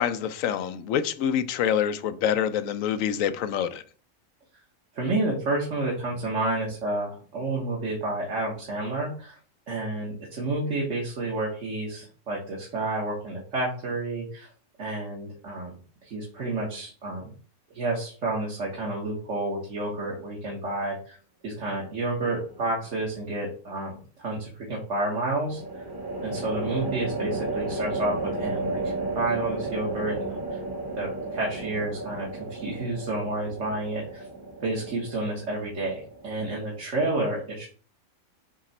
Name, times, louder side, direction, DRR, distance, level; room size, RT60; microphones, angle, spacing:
voice 1, 0.0-3.8, left 9 dB, 70° left, 0.9 m, -26 dB
voice 2, 4.9-9.4 9.7-14.5 14.8-15.7 16.0-17.3 17.7-21.2 21.4-25.6 26.2-30.6 31.0-34.3 34.6-37.7, right 2 dB, 55° right, 1.7 m, -30 dB
sound 1, 22.3-22.9 25.4-36.8, right 2 dB, 20° right, 1.0 m, -33 dB
7.3 x 3.1 x 4.2 m
omnidirectional pair, 1.5 m